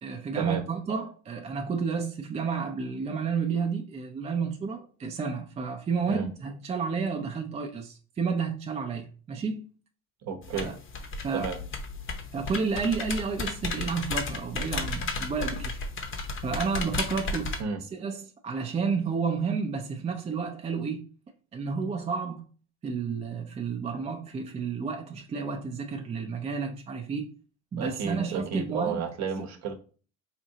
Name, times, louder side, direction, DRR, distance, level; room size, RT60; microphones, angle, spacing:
voice 1, 0.0-9.7 10.5-10.8 11.2-11.5 12.3-15.8 16.4-17.6 17.9-21.0 21.5-22.5 22.8-27.3 27.7-29.1, right 5 dB, 15° right, 0.4 m, -31 dB
voice 2, 10.2-10.7 11.3-11.6 17.6-17.8 27.8-29.7, right 6 dB, 40° right, 0.8 m, -32 dB
sound 1, 10.4-17.6, left 3 dB, 30° left, 0.7 m, -34 dB
4.2 x 2.7 x 2.7 m
hypercardioid pair, 75°, 41 cm